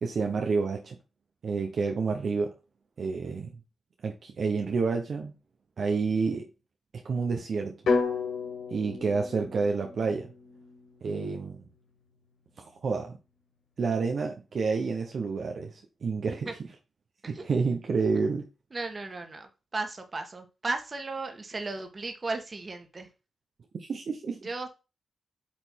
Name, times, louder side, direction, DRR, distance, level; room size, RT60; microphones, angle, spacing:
voice 1, 0.0-1.0 1.4-2.5 3.0-3.5 4.0-5.3 5.8-6.5 7.0-7.8 8.7-10.3 11.0-11.7 12.6-13.2 13.8-15.7 16.0-16.5 17.3-18.5 23.8-24.4, right 4 dB, 65° right, 1.1 m, -29 dB
sound 1, 7.9-11.9, left 4 dB, 80° left, 2.1 m, -32 dB
voice 2, 18.7-23.1 24.4-24.7, right 3 dB, 40° right, 1.8 m, -35 dB
8.8 x 3.4 x 4.7 m
cardioid pair, 65°, 0 cm